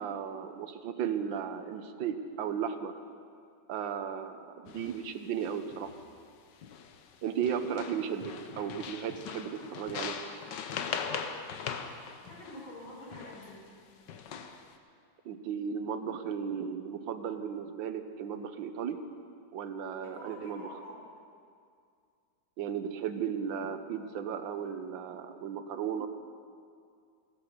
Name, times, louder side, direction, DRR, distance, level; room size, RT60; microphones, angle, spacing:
voice 1, 0.0-2.9 3.7-5.9 7.2-10.2 15.2-19.0 19.5-20.8 22.6-26.1, right 7 dB, 80° right, 9 dB, 1.6 m, -35 dB
sound 1, 4.7-5.0 5.4-6.0 6.6-7.2 7.4-13.6 14.1-14.7, left 7 dB, 70° left, 1.5 m, -40 dB
voice 2, 12.3-13.6 20.1-21.0, left 1 dB, 85° left, -5 dB, 5.7 m, -46 dB
15.5 x 13.0 x 6.7 m, 2.3 s
omnidirectional pair, 2.1 m